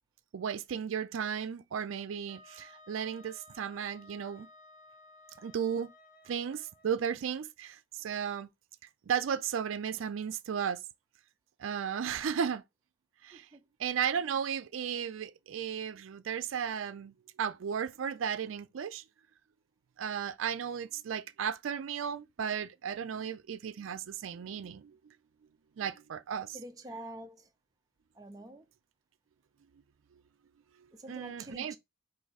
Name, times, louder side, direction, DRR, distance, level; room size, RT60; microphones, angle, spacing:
voice 1, 0.3-4.5 5.4-5.9 6.3-8.5 9.1-10.8 11.6-12.6 13.2-13.5 13.8-19.0 20.0-25.0 25.8-26.6 31.1-31.8, right 7 dB, 90° right, 0.4 m, -35 dB
Wind instrument woodwind instrument, 2.3-7.0, left 2 dB, 55° left, 1.2 m, -57 dB
voice 2, 13.3-13.6 26.5-27.5 28.2-28.6 30.9-31.8, right 1 dB, 20° right, 0.5 m, -46 dB
4.8 x 2.7 x 4.0 m
head